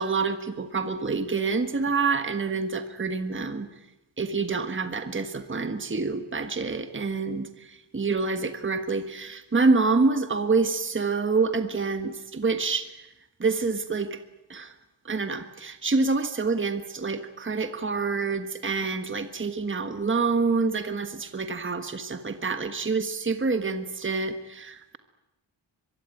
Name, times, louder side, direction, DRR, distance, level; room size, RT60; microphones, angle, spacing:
voice 1, 0.0-3.7 4.2-12.9 13.4-14.2 14.5-14.7 15.0-25.0, right 4 dB, 25° right, 8 dB, 1.5 m, -27 dB
24.5 x 23.0 x 9.2 m, 0.94 s
wide cardioid pair, 160°, 47 cm